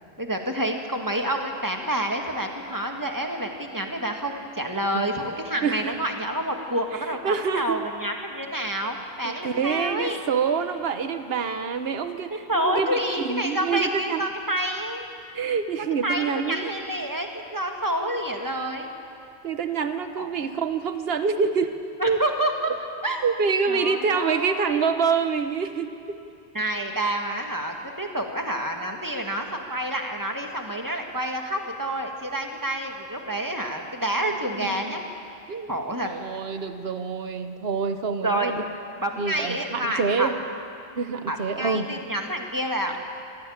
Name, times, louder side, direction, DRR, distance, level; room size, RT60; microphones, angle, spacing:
voice 1, 0.2-10.2 12.3-15.1 16.0-18.9 20.2-20.5 22.0-22.7 23.0-23.2 23.7-24.9 26.5-35.0 35.7-36.1 38.2-38.6 39.0-40.3 41.3-43.0, right 1 dB, 20° right, 2 dB, 2.1 m, -28 dB
voice 2, 5.6-6.0 6.9-7.9 9.2-13.0 13.2-14.3 15.3-16.7 19.4-21.7 22.1-22.2 23.2-26.2 34.2-34.3 34.6-35.0 35.5-35.7 36.0-38.6 39.2-40.3 41.0-41.9, right 5 dB, 70° right, 9 dB, 1.3 m, -26 dB
25.0 x 16.0 x 8.9 m, 2.5 s
omnidirectional pair, 1.1 m